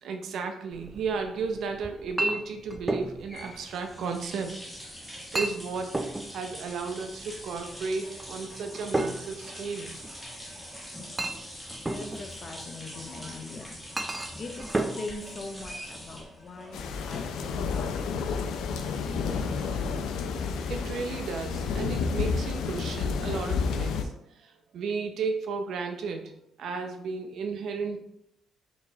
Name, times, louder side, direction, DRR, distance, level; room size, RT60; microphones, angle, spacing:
voice 1, 0.0-4.5 4.8-6.0 6.3-9.9 20.7-26.3 26.6-28.0, right 4 dB, 70° right, 5 dB, 0.6 m, -34 dB
Chink clink, 0.7-16.2, right 2 dB, 15° right, 0.3 m, -36 dB
sound 1, 3.1-20.0, equal, 5° left, 1.5 m, -44 dB
voice 2, 11.8-13.8 14.4-16.8 17.0-18.9, left 3 dB, 45° left, 6 dB, 0.6 m, -42 dB
sound 2, 16.7-24.0, left 5 dB, 85° left, 0.4 m, -30 dB
4.7 x 3.0 x 2.7 m, 0.79 s
cardioid pair, 90°, 0 cm